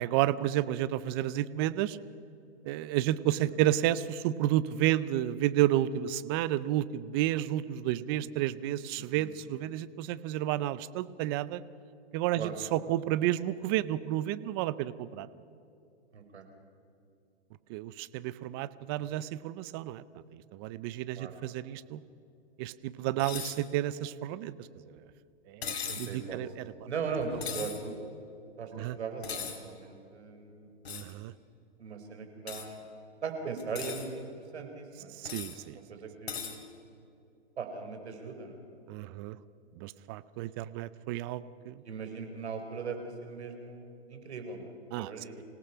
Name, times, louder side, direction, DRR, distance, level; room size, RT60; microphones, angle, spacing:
voice 1, 0.0-2.0 2.6-11.6 12.1-15.3 17.7-22.0 22.6-25.0 25.5-26.7 28.7-29.0 30.9-31.3 35.2-35.8 38.9-39.4 39.8-41.8 44.9-45.1, right 13 dB, 20° right, 17 dB, 0.5 m, -31 dB
voice 2, 9.0-9.3 12.3-12.6 16.1-16.4 21.2-21.4 25.9-26.4 26.9-28.0 28.6-30.7 31.8-32.9 33.2-35.1 35.6-36.6 37.6-38.6 41.8-43.0 43.2-44.7 45.0-45.3, right 5 dB, 75° right, 5 dB, 4.5 m, -39 dB
sound 1, 23.2-23.6 25.6-26.1 27.4-27.8 29.2-29.6 30.9-31.1 32.5-32.7 33.6-34.1 35.3-35.6 36.3-36.6, left 7 dB, 65° left, 3.2 m, -38 dB
26.5 x 18.0 x 5.6 m, 2.7 s
hypercardioid pair, 135°, 34 cm